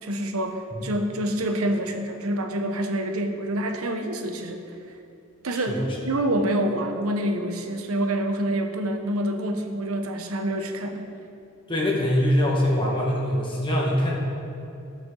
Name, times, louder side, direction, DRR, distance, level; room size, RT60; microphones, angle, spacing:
voice 1, 0.0-4.6 5.4-11.1, right 1 dB, 80° right, 5 dB, 1.1 m, -27 dB
voice 2, 5.5-5.9 11.7-14.2, equal, 25° left, -3 dB, 1.6 m, -23 dB
18.5 x 6.8 x 4.0 m, 2.6 s
head